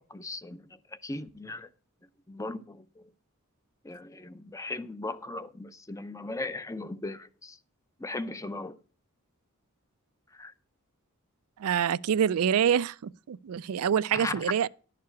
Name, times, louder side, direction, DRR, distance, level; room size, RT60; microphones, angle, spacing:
voice 1, 0.0-1.7 2.3-3.1 3.8-7.6 8.0-8.8 10.3-10.5 14.1-14.4, left 2 dB, 15° left, 0.6 m, -38 dB
voice 2, 11.6-14.7, right 8 dB, 80° right, 0.4 m, -26 dB
11.5 x 6.7 x 5.8 m
head